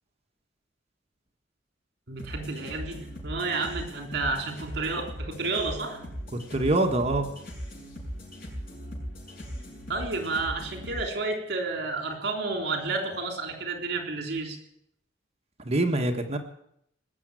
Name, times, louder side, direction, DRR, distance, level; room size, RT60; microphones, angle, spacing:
voice 1, 2.1-6.0 9.9-14.6, right 3 dB, 65° right, 4 dB, 3.5 m, -31 dB
sound 1, 2.2-11.0, equal, 55° left, 6.6 m, -39 dB
voice 2, 6.5-7.3 15.6-16.4, right 2 dB, 35° right, 4 dB, 1.6 m, -24 dB
19.5 x 7.5 x 9.2 m, 0.73 s
head